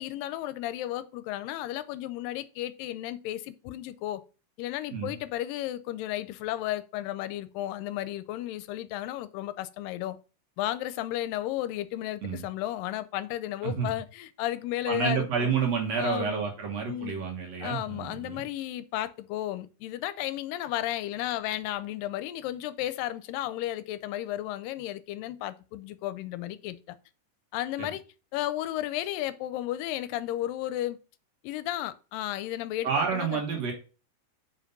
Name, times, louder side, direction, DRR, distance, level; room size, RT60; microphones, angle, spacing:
voice 1, 0.0-4.2 4.6-10.2 10.6-15.5 16.0-16.4 16.9-17.2 17.6-27.0 27.5-28.0 28.3-31.0 31.4-33.4, left 14 dB, 85° left, 2.3 m, -33 dB
voice 2, 14.9-18.4 27.8-27.9 32.8-33.7, right 6 dB, 60° right, 2.2 m, -29 dB
5.7 x 5.1 x 5.2 m
omnidirectional pair, 3.9 m